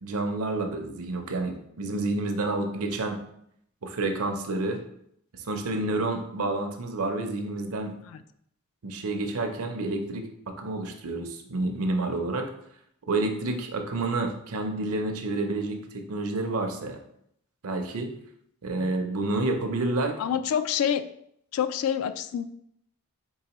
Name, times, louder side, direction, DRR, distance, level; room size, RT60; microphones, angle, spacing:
voice 1, 0.0-3.2 3.8-4.8 5.3-7.9 8.8-12.5 13.1-17.0 17.6-18.1 18.6-20.2, right 2 dB, 70° right, 5 dB, 0.6 m, -29 dB
voice 2, 20.2-21.0 21.5-22.4, left 8 dB, 70° left, 14 dB, 0.3 m, -27 dB
4.6 x 3.6 x 3.0 m, 0.72 s
head